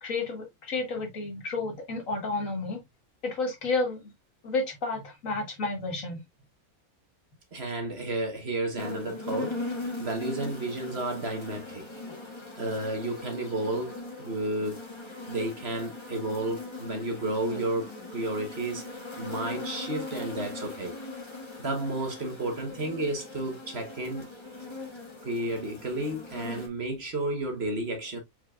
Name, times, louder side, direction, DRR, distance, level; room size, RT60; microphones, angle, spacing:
voice 1, 0.0-2.8 3.2-4.1 4.4-6.2, left 3 dB, 60° left, 1.8 m, -31 dB
voice 2, 7.5-9.6 10.0-11.9 12.6-14.8 15.3-18.9 19.2-20.9 21.6-24.3 25.2-28.2, right 2 dB, 45° right, 1.4 m, -32 dB
sound 1, 8.8-26.7, left 3 dB, 20° left, 1.2 m, -40 dB
4.6 x 4.5 x 2.4 m
omnidirectional pair, 1.6 m